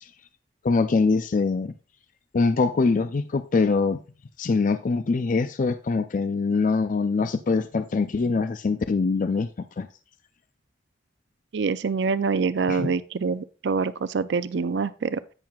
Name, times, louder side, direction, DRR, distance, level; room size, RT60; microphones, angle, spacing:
voice 1, 0.6-1.7 2.3-4.0 4.4-9.5 9.8-9.9 12.7-12.9, left 4 dB, 45° left, 0.4 m, -23 dB
voice 2, 11.5-15.3, right 5 dB, 65° right, 0.4 m, -25 dB
10.5 x 8.9 x 2.4 m
head